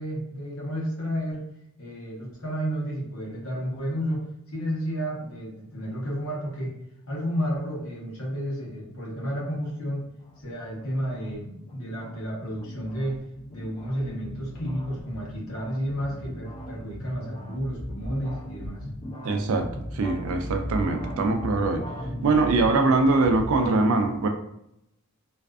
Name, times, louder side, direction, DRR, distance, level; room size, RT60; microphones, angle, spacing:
voice 1, 0.0-1.4 1.8-4.2 4.5-6.7 7.1-10.0 10.4-13.2 13.5-18.8, equal, 70° left, -4 dB, 0.8 m, -31 dB
sound 1, 9.8-23.7, equal, 25° left, 0.4 m, -38 dB
voice 2, 19.2-21.9 22.2-24.3, right 3 dB, 70° right, 6 dB, 0.3 m, -23 dB
2.4 x 2.3 x 2.3 m, 0.80 s
head